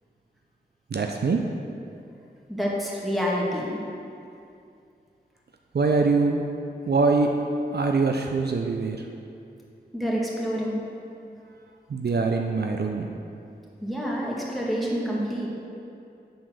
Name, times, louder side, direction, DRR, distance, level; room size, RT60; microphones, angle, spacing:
voice 1, 0.9-1.4 5.7-6.4 6.9-7.3 7.7-9.1 11.9-13.1, right 4 dB, 65° right, 3 dB, 0.5 m, -23 dB
voice 2, 2.5-3.7 9.9-10.8 13.8-15.5, equal, ahead, -4 dB, 1.8 m, -27 dB
8.0 x 4.3 x 6.3 m, 2.5 s
wide cardioid pair, 50°, 18 cm